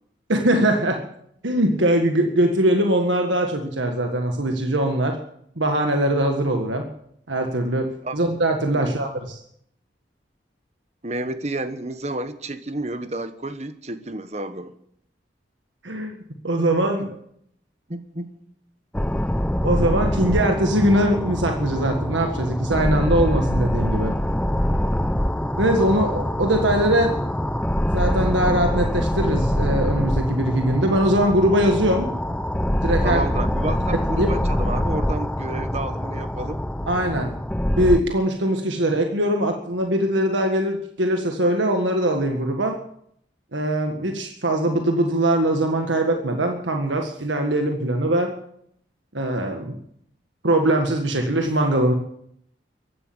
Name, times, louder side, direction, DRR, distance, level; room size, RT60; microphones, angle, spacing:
voice 1, 0.3-1.0 1.4-5.2 5.6-6.9 7.3-9.4 15.8-16.1 16.4-17.2 19.6-24.1 25.6-27.2 27.9-32.1 32.8-33.2 34.2-34.3 36.9-37.3 37.7-42.8 43.5-48.3 49.1-49.8 50.4-51.9, right 1 dB, 90° right, 4 dB, 1.7 m, -21 dB
voice 2, 11.0-14.7 17.9-18.4 33.0-36.6, right 2 dB, 35° right, 11 dB, 1.1 m, -30 dB
sound 1, 18.9-38.0, equal, 5° left, 0.5 m, -24 dB
15.5 x 11.5 x 7.9 m, 0.70 s
head